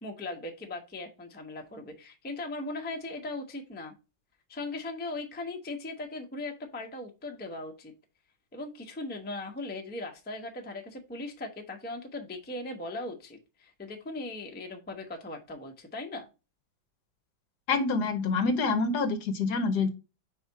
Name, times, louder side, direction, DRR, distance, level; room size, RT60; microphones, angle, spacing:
voice 1, 0.0-3.9 4.5-7.9 8.5-16.3, left 2 dB, 10° left, 2 dB, 0.5 m, -39 dB
voice 2, 17.7-19.9, left 4 dB, 70° left, 9 dB, 1.2 m, -26 dB
4.9 x 4.2 x 4.6 m, 0.29 s
omnidirectional pair, 2.1 m